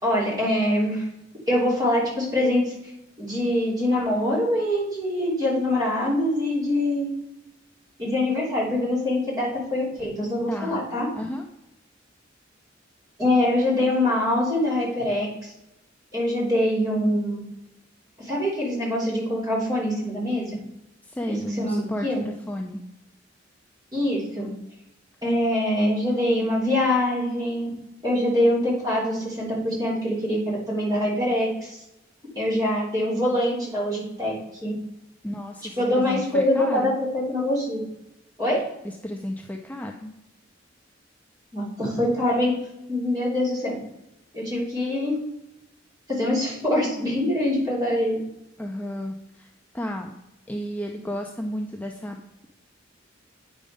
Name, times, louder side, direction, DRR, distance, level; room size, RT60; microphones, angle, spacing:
voice 1, 0.0-1.1 1.5-2.7 3.2-7.1 8.0-11.1 13.2-15.5 16.1-17.4 18.2-20.5 21.3-22.2 23.9-24.5 25.2-27.7 28.0-31.8 32.3-34.3 34.6-34.7 35.8-37.8 38.4-38.6 41.5-42.6 42.9-43.8 44.3-45.2 46.1-48.2, left 1 dB, 20° right, -5 dB, 3.3 m, -24 dB
voice 2, 10.5-10.8 11.1-11.4 21.1-22.8 35.2-37.0 38.8-40.1 48.6-49.5 49.7-50.1 50.5-52.2, equal, 10° left, 1 dB, 0.5 m, -33 dB
8.8 x 5.0 x 5.3 m, 0.89 s
head